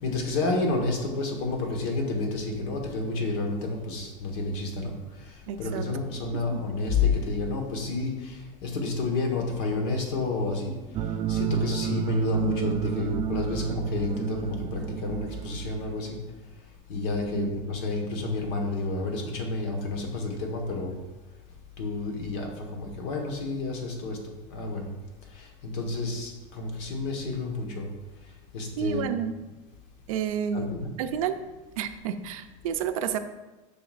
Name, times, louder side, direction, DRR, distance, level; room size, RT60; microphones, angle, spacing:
voice 1, 0.0-21.0 21.8-24.2 24.5-24.9 25.2-27.9 28.1-29.1 30.5-30.9, left 3 dB, 60° left, 2 dB, 1.5 m, -30 dB
voice 2, 5.5-5.9 6.5-6.6 17.3-17.5 28.8-29.3 30.1-30.7 31.0-31.4 31.8-33.2, right 8 dB, 85° right, 9 dB, 0.6 m, -30 dB
sound 1, 10.9-16.1, right 9 dB, 25° right, 0.4 m, -30 dB
6.8 x 5.9 x 2.5 m, 1.1 s
supercardioid pair, 140°, 17 cm